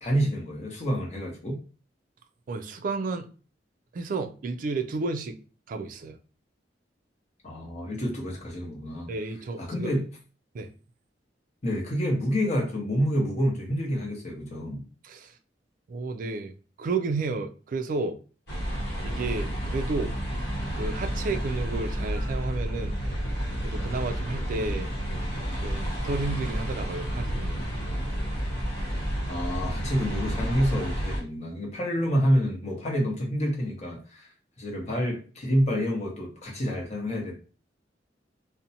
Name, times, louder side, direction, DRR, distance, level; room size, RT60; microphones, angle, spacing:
voice 1, 0.0-1.6 7.4-9.1 9.6-10.1 11.6-14.9 29.3-34.3 34.6-37.3, equal, 40° left, 0.8 m, -28 dB
voice 2, 2.5-3.3 3.9-5.4 5.7-6.2 9.1-9.9 10.5-10.7 15.0-15.4 15.9-18.2 19.0-20.1 20.7-23.0 23.6-24.9 25.6-27.6, right 3 dB, 50° right, 0.3 m, -32 dB
sound 1, 18.5-31.2, equal, 65° left, 1.0 m, -30 dB
2.5 x 2.1 x 2.7 m
head